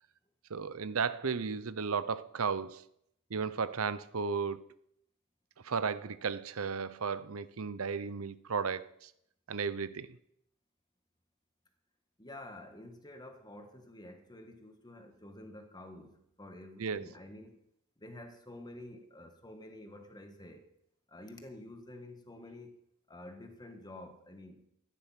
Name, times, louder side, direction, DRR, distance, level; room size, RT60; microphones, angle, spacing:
voice 1, 0.5-2.8 3.3-4.7 5.6-9.1 9.5-10.1 16.8-17.1, right 5 dB, 80° right, 0.7 m, -34 dB
voice 2, 12.2-17.6 18.0-20.7 21.1-24.7, left 1 dB, 20° left, 1.7 m, -49 dB
14.5 x 10.0 x 5.9 m
head